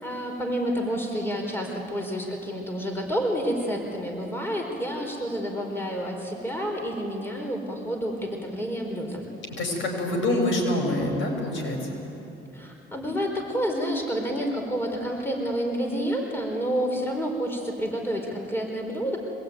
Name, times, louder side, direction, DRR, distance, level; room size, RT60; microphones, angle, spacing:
voice 1, 0.0-9.2 12.5-19.2, equal, 10° left, 1 dB, 4.4 m, -29 dB
voice 2, 9.6-11.8, left 1 dB, 75° left, 1 dB, 6.8 m, -25 dB
24.5 x 20.5 x 9.4 m, 2.9 s
cardioid pair, 90°, 20 cm